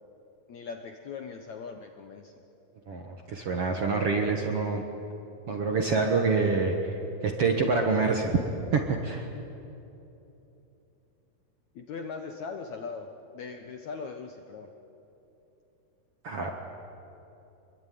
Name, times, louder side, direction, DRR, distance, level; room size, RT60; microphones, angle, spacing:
voice 1, 0.5-2.3 11.8-14.7, left 5 dB, 65° left, 5 dB, 1.9 m, -40 dB
voice 2, 2.9-4.8 5.5-6.9 7.2-8.3 8.7-9.3 16.2-16.5, right 4 dB, 55° right, 2 dB, 1.8 m, -26 dB
26.0 x 22.5 x 9.4 m, 3.0 s
omnidirectional pair, 4.6 m